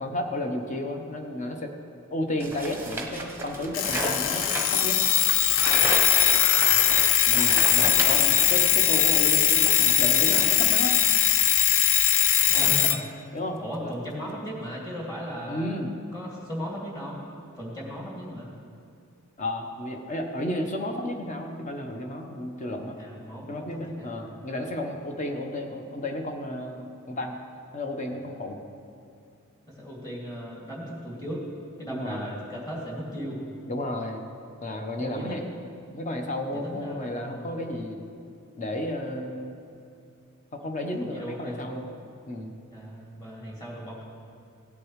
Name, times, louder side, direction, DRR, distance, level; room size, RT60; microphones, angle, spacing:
voice 1, 0.0-1.7 2.1-5.0 7.3-11.1 13.3-13.9 15.5-15.9 19.4-23.0 23.5-27.4 27.7-28.6 31.9-32.3 33.6-34.2 34.6-35.4 35.9-38.0 38.6-39.6 40.5-41.9 42.3-42.5, left 1 dB, 35° left, 3 dB, 1.0 m, -32 dB
sound 1, 2.4-8.8 9.1-10.1, right 2 dB, 10° right, 1.0 m, -34 dB
Alarm, 3.7-13.0, left 10 dB, 60° left, 0.4 m, -21 dB
voice 2, 6.5-6.9 12.5-13.1 13.6-15.7 16.1-17.2 17.5-18.5 23.0-24.4 29.8-31.4 31.8-33.4 35.0-35.4 36.5-37.5 41.0-41.7 42.7-44.0, equal, 20° left, -4 dB, 2.4 m, -37 dB
16.5 x 8.4 x 3.2 m, 2.5 s
head